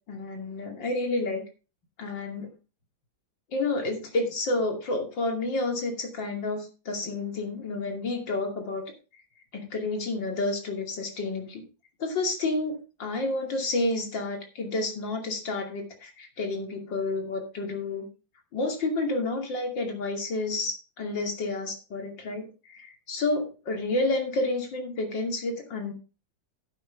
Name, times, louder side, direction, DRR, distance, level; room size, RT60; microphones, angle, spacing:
voice 1, 0.1-1.4 2.0-2.5 3.5-8.8 9.5-11.6 12.0-18.1 18.5-25.9, left 2 dB, 75° left, 4 dB, 3.2 m, -30 dB
10.5 x 9.3 x 3.5 m, 0.32 s
omnidirectional pair, 2.0 m